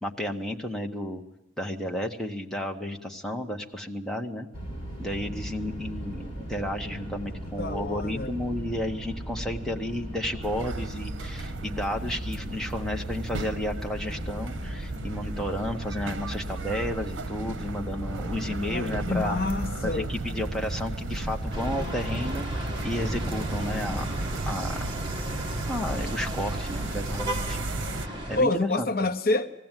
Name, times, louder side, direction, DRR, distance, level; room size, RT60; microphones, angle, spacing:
voice 1, 0.0-1.2 1.6-4.5 5.0-19.4 19.8-24.1 24.5-24.8 25.7-27.7 28.0-28.9, left 1 dB, 5° left, 1 dB, 1.2 m, -32 dB
sound 1, 4.5-24.0, right 1 dB, 30° left, 5.4 m, -37 dB
voice 2, 7.6-8.4 18.7-20.1 28.4-29.5, left 2 dB, 50° left, 9 dB, 0.7 m, -27 dB
sound 2, 10.4-28.1, right 2 dB, 85° right, 0.8 m, -36 dB
sound 3, 21.5-28.4, right 1 dB, 25° right, 1.7 m, -34 dB
20.0 x 15.5 x 9.0 m, 0.97 s
head